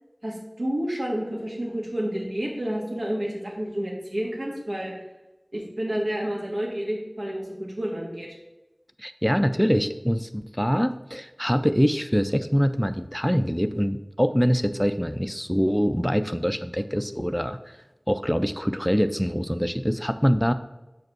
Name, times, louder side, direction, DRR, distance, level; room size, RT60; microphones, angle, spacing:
voice 1, 0.2-4.9 5.5-8.3, equal, 90° right, -2 dB, 1.7 m, -30 dB
voice 2, 9.0-17.8 18.1-20.5, equal, ahead, 10 dB, 0.4 m, -24 dB
5.2 x 5.0 x 6.2 m, 1.0 s
wide cardioid pair, 45°, 0 cm